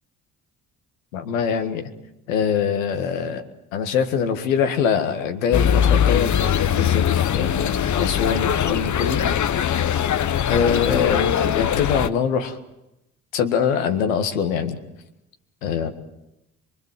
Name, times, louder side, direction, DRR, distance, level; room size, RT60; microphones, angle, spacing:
voice 1, 1.1-1.9 2.3-3.4 3.7-6.3 6.7-9.2 10.5-12.6 13.3-14.8 15.6-15.9, left 7 dB, 85° left, 6 dB, 2.0 m, -23 dB
sound 1, 5.5-12.1, left 9 dB, 45° left, 1.1 m, -21 dB
24.0 x 24.0 x 7.6 m, 0.92 s
hypercardioid pair, 50°, 39 cm